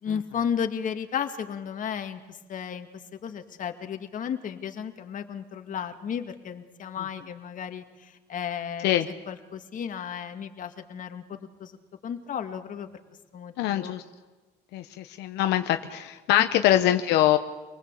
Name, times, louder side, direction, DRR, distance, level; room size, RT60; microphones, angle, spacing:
voice 1, 0.0-8.9 9.3-11.8 12.0-12.9 13.3-13.9 16.5-16.6, left 7 dB, 50° left, 7 dB, 2.2 m, -34 dB
voice 2, 13.6-14.0 14.7-17.4, left 13 dB, 85° left, 7 dB, 1.1 m, -23 dB
26.5 x 19.5 x 8.4 m, 1.2 s
cardioid pair, 110°, 17 cm